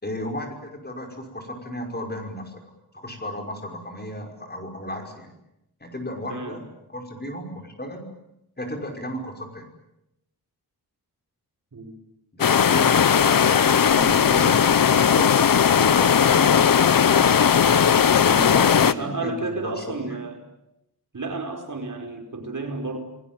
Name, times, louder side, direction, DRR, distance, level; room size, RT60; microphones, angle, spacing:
voice 1, 0.0-2.6 2.9-5.3 5.8-8.0 8.6-9.7 12.3-15.3 18.1-20.2, equal, 25° left, 3 dB, 5.6 m, -34 dB
sound 1, 12.4-18.9, left 7 dB, 60° left, 0.9 m, -17 dB
voice 2, 18.9-20.5 21.1-23.0, right 3 dB, 55° right, 3 dB, 5.1 m, -31 dB
29.5 x 20.0 x 9.1 m, 0.88 s
wide cardioid pair, 135°, 38 cm